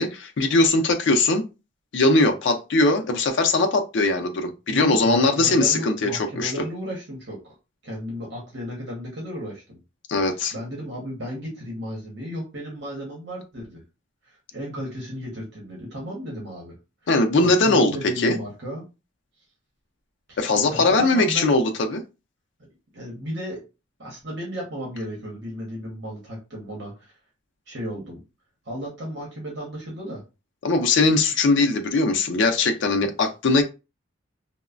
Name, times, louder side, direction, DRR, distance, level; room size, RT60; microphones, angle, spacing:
voice 1, 0.0-1.4 1.9-6.5 10.1-10.5 17.1-18.4 20.4-22.0 30.6-33.6, left 3 dB, 65° left, 0.4 m, -20 dB
voice 2, 4.7-7.5 7.8-9.8 10.5-13.8 14.2-16.7 17.0-18.8 20.3-20.4 20.7-21.5 22.9-23.6 24.0-27.1 27.7-28.2 28.6-30.2, equal, 55° right, 1.0 m, -34 dB
3.0 x 2.0 x 2.4 m
head